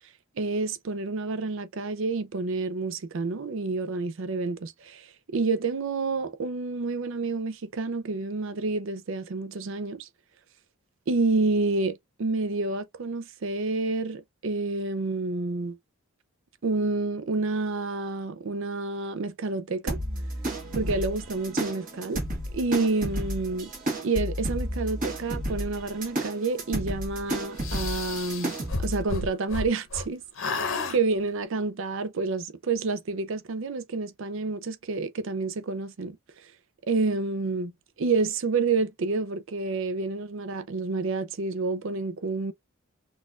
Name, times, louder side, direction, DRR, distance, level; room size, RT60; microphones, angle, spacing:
voice 1, 0.4-10.1 11.1-15.8 16.6-20.0 20.7-22.2 22.5-23.7 24.0-28.5 28.8-36.2 36.9-37.7 38.0-42.5, right 3 dB, 60° right, 0.5 m, -29 dB
sound 1, 19.9-29.0, right 1 dB, 35° right, 1.3 m, -32 dB
sound 2, 27.6-30.1 30.4-31.0, left 3 dB, 60° left, 0.7 m, -32 dB
4.0 x 2.4 x 2.4 m
head